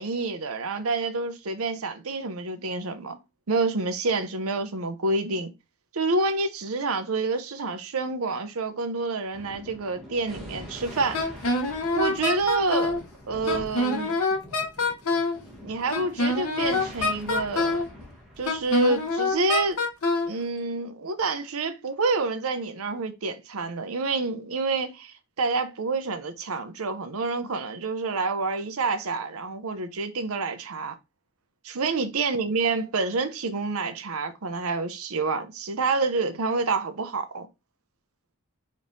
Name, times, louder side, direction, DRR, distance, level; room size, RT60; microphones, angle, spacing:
voice 1, 0.0-3.2 3.5-5.5 5.9-11.2 11.9-13.0 13.3-14.2 15.6-17.8 18.4-19.8 20.3-31.0 31.6-37.5, right 3 dB, 75° right, 0.7 m, -28 dB
Thunder, 9.3-20.2, left 1 dB, ahead, 1.3 m, -44 dB
Wind instrument woodwind instrument, 11.1-13.0 13.5-15.4 15.9-17.9 18.5-20.3, left 2 dB, 90° left, 0.9 m, -25 dB
5.0 x 3.2 x 2.7 m
head